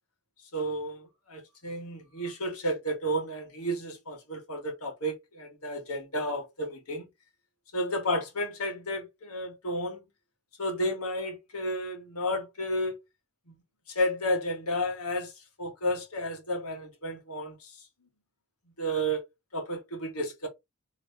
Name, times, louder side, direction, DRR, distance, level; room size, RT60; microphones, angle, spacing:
voice 1, 0.5-7.1 7.7-10.0 10.6-13.0 13.5-13.6 13.9-15.3 15.6-17.7 18.8-19.2 19.5-20.5, equal, 75° left, 1.8 m, -32 dB
3.8 x 3.2 x 3.4 m
head